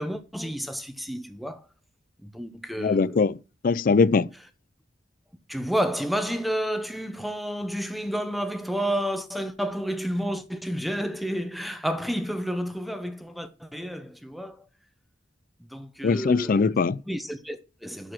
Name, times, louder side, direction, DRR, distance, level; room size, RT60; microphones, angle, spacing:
voice 1, 0.0-1.7 2.2-3.2 5.5-14.6 15.7-16.6 17.1-18.1, equal, ahead, 0.8 m, -30 dB
voice 2, 2.8-3.4 3.6-4.3 16.0-17.0, left 4 dB, 50° left, 0.4 m, -21 dB
11.5 x 4.8 x 5.8 m
head